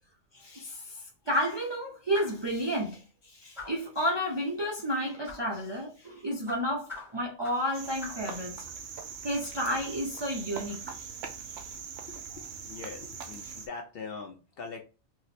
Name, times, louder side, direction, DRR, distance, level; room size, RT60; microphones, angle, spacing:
voice 1, 0.3-8.6 9.2-11.1 11.5-11.7 13.4-13.5, equal, 40° right, 0.3 m, -32 dB
sound 1, 2.1-2.5 3.6-3.9 5.3-5.5 6.5-7.7 8.0-8.3, left 3 dB, ahead, 0.9 m, -43 dB
Cricket, 7.7-13.7, right 6 dB, 70° right, 0.9 m, -41 dB
voice 2, 12.6-14.8, left 4 dB, 60° left, 0.6 m, -42 dB
2.8 x 2.0 x 4.1 m
omnidirectional pair, 1.4 m